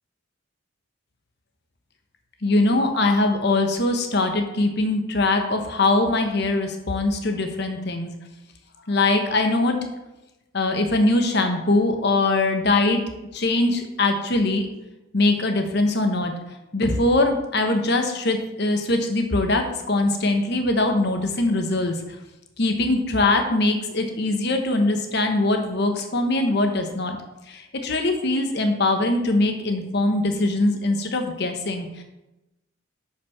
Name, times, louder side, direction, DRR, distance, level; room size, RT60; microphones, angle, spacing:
voice 1, 2.4-8.1 8.9-9.8 10.5-13.0 13.3-14.7 15.1-16.3 16.7-22.0 22.6-27.2 27.5-32.0, left 2 dB, 50° left, 5 dB, 1.0 m, -22 dB
6.7 x 5.8 x 5.8 m, 0.97 s
head